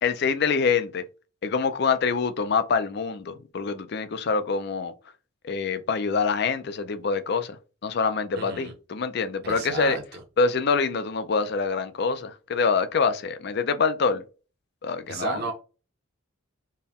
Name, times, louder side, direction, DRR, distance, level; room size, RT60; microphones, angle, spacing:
voice 1, 0.0-1.0 1.4-4.9 5.4-7.6 7.8-10.0 10.4-14.2 14.8-15.4, left 5 dB, 50° left, 0.4 m, -25 dB
voice 2, 8.4-8.7 9.4-10.2 15.1-15.5, right 4 dB, 50° right, 0.9 m, -33 dB
4.3 x 2.1 x 3.5 m
head